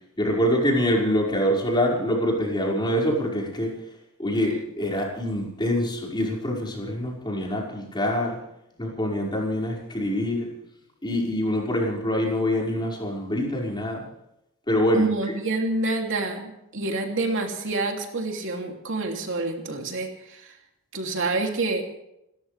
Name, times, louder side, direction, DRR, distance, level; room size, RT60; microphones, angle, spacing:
voice 1, 0.2-3.7 4.2-8.4 8.8-10.5 11.0-14.0 14.7-15.1, equal, 20° left, -1 dB, 5.4 m, -25 dB
voice 2, 14.9-20.6 20.9-21.8, right 2 dB, 60° right, 2 dB, 2.9 m, -27 dB
29.5 x 14.0 x 3.4 m, 0.84 s
head